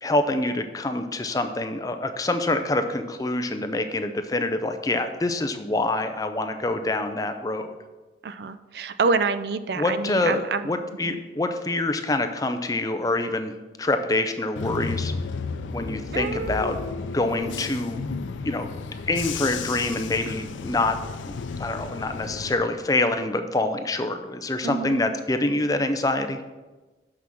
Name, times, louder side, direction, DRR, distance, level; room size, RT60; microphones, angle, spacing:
voice 1, 0.0-7.8 9.8-10.4 10.6-15.1 15.7-16.8 17.1-18.1 18.4-18.7 19.1-21.3 21.6-26.4, left 2 dB, 20° left, 7 dB, 0.5 m, -26 dB
voice 2, 8.2-10.7 11.0-11.2 16.1-16.7 24.6-25.0, right 4 dB, 60° right, 11 dB, 0.4 m, -27 dB
Bus / Engine, 14.6-22.5, left 4 dB, 90° left, 0.5 m, -33 dB
6.3 x 5.8 x 6.0 m, 1.2 s
head